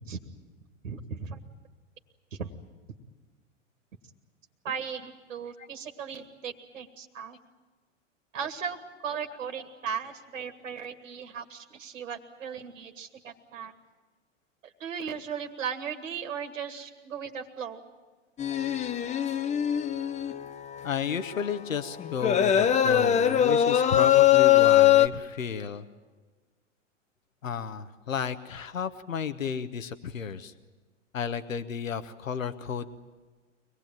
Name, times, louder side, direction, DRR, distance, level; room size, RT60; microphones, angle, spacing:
voice 1, 0.8-1.4 2.3-2.5 4.6-7.4 8.3-13.7 14.6-17.8, right 7 dB, 80° right, 7 dB, 2.0 m, -37 dB
sound 1, 18.4-20.5 20.8-20.9 21.2-21.7 22.0-25.1, left 11 dB, 20° left, 0.7 m, -22 dB
voice 2, 20.8-25.8 27.4-30.5 31.1-32.9, left 7 dB, 90° left, 10 dB, 1.1 m, -33 dB
24.5 x 19.0 x 9.1 m, 1.4 s
hypercardioid pair, 105°, 39 cm